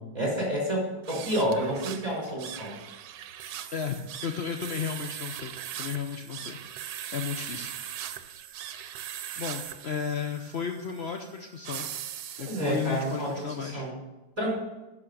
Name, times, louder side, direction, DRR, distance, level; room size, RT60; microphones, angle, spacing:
voice 1, 0.0-2.7 12.5-13.4 13.7-14.0 14.4-14.5, equal, 20° right, -4 dB, 4.7 m, -29 dB
sound 1, 1.0-13.5, right 10 dB, 70° right, 1.3 m, -40 dB
voice 2, 3.7-7.7 8.7-9.0 9.4-11.9 12.4-13.9, left 7 dB, 75° left, 4 dB, 0.6 m, -34 dB
10.5 x 6.2 x 6.6 m, 1.1 s
omnidirectional pair, 2.1 m